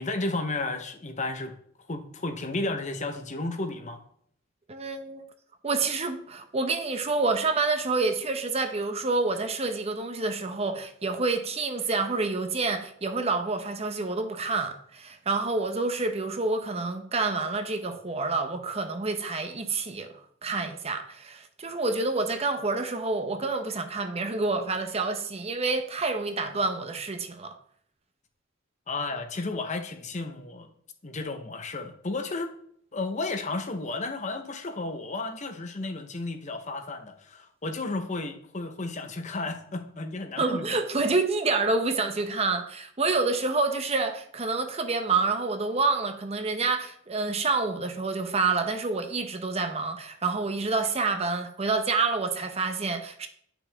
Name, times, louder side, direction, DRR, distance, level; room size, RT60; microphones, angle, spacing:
voice 1, 0.0-1.5 1.9-4.0 28.9-30.7 31.0-32.5 32.9-40.7, left 2 dB, 40° left, 0.9 m, -33 dB
voice 2, 4.7-5.3 5.6-27.6 40.4-53.3, right 3 dB, 30° right, 0.8 m, -28 dB
10.5 x 6.0 x 3.5 m
head